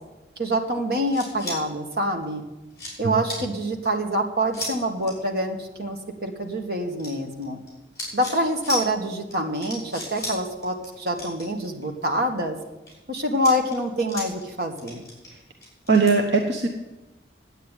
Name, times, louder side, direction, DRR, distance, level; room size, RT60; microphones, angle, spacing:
voice 1, 0.4-2.4 3.0-7.6 8.1-12.6 13.1-15.0, equal, 60° right, 2 dB, 1.7 m, -26 dB
sound 1, 1.1-1.6 2.2-2.3 2.7-2.9 3.3-3.4 4.5-4.7 5.0-5.1 7.0-7.7 8.0-8.4 8.6-8.8 9.3-9.4 9.6-10.4 10.6-10.9 11.1-12.2 12.6-12.9 13.3-14.5 14.8-16.1, left 1 dB, 15° left, 5.6 m, -34 dB
voice 2, 15.9-16.7, right 4 dB, 75° right, 2 dB, 1.1 m, -20 dB
10.0 x 9.1 x 9.1 m, 1.1 s
head